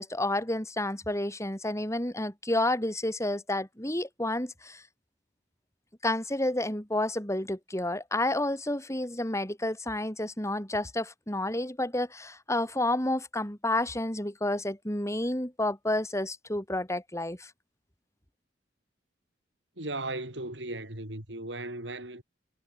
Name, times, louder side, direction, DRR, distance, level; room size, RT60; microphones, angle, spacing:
voice 1, 0.0-4.8 6.0-17.5, left 1 dB, 15° left, 7.5 m, -30 dB
voice 2, 19.8-22.2, right 2 dB, 85° right, 7.9 m, -36 dB
head